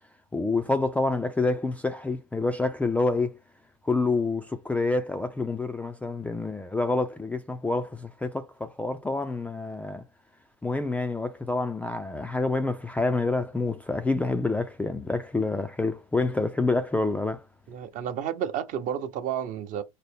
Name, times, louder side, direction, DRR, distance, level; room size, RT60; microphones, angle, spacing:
voice 1, 0.3-3.4 3.8-10.0 10.6-17.5, left 3 dB, 10° left, 0.3 m, -27 dB
voice 2, 17.7-19.8, right 9 dB, 45° right, 0.7 m, -31 dB
4.1 x 2.0 x 3.4 m
supercardioid pair, 105°, 18 cm